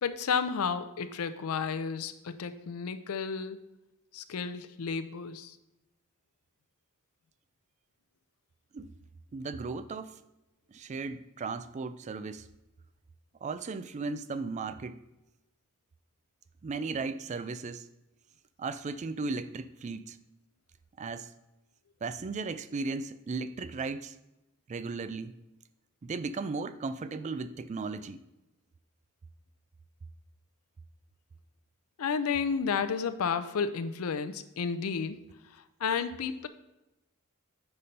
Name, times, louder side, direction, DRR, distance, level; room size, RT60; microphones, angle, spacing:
voice 1, 0.0-3.6 4.1-5.6 32.0-35.2 35.5-36.5, left 6 dB, 90° left, 0.5 m, -32 dB
voice 2, 9.3-10.2 10.7-12.5 13.4-15.0 16.6-17.9 18.6-20.2 21.0-21.3 22.0-24.2 24.7-25.4 26.0-28.2, right 4 dB, 35° right, 0.3 m, -36 dB
6.7 x 4.3 x 5.2 m
head